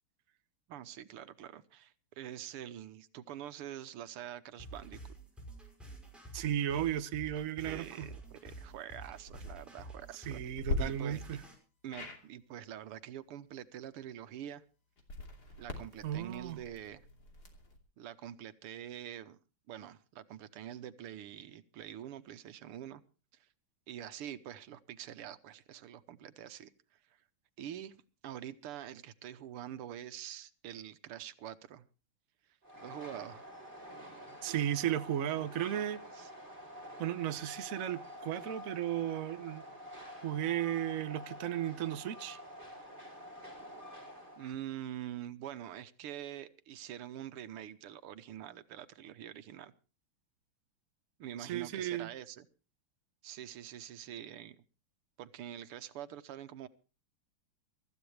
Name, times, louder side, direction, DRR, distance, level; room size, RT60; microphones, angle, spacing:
voice 1, 0.7-5.0 7.6-11.2 11.8-14.6 15.6-17.0 18.0-19.4 19.7-23.0 23.9-26.7 27.6-28.0 28.2-31.9 32.8-33.5 36.1-36.3 44.4-49.7 51.2-52.5 53.2-54.6 55.2-56.7, right 11 dB, 85° right, 1.9 m, -45 dB
sound 1, 4.6-11.5, right 2 dB, ahead, 5.8 m, -49 dB
voice 2, 6.3-8.1 10.3-11.4 16.0-16.6 34.4-36.0 37.0-39.6 40.2-42.4 51.4-52.1, right 11 dB, 50° right, 1.1 m, -35 dB
sound 2, 9.2-9.5 10.6-10.8 11.9-12.2 15.0-17.8, left 2 dB, 45° left, 3.4 m, -41 dB
Train, 32.6-44.5, equal, 20° right, 7.8 m, -48 dB
23.5 x 14.0 x 3.3 m
omnidirectional pair, 2.4 m